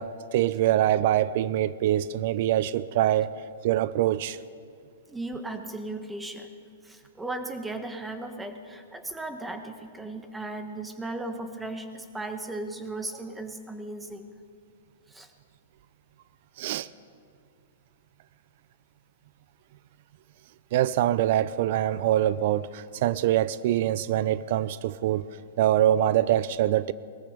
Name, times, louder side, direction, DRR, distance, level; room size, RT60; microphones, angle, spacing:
voice 1, 0.0-3.3 3.6-4.4 16.6-16.9 20.7-25.2 25.6-26.9, right 12 dB, 55° right, 0.4 m, -24 dB
voice 2, 5.1-6.5 6.8-14.3 15.1-15.3, right 2 dB, 5° right, 1.2 m, -36 dB
19.0 x 14.0 x 5.2 m
hypercardioid pair, 130°, 0 cm